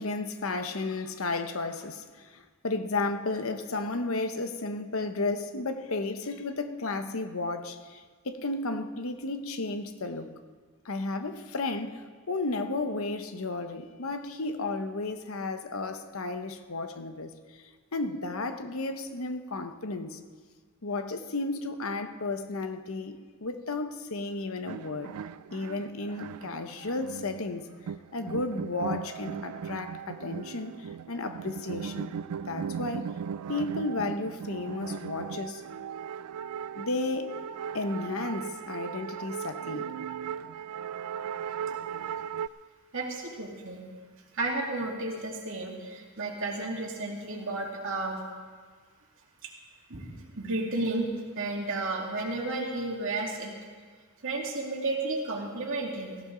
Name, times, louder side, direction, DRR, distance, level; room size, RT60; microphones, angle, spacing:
voice 1, 0.0-10.3 10.8-17.6 17.9-20.2 20.8-25.1 25.5-27.7 28.1-32.1 32.4-33.1 33.5-35.6 36.8-37.4 37.7-40.0, left 3 dB, 65° left, 8 dB, 1.0 m, -33 dB
sound 1, 24.7-42.5, right 7 dB, 90° right, 0.4 m, -38 dB
voice 2, 42.9-43.8 44.3-48.2 49.4-49.5 49.9-51.1 51.4-53.6 54.2-56.2, right 2 dB, 60° right, 0 dB, 2.4 m, -32 dB
17.0 x 15.5 x 3.9 m, 1.5 s
head